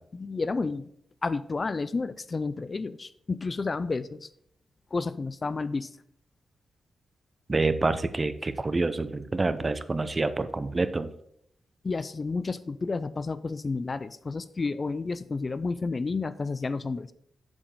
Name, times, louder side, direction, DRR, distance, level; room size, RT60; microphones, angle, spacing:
voice 1, 0.1-0.9 1.2-4.3 4.9-5.9 11.8-17.1, left 4 dB, 30° left, 14 dB, 0.3 m, -31 dB
voice 2, 7.5-11.1, right 3 dB, 25° right, 12 dB, 0.5 m, -27 dB
7.3 x 7.1 x 4.8 m, 0.70 s
wide cardioid pair, 135°, 0 cm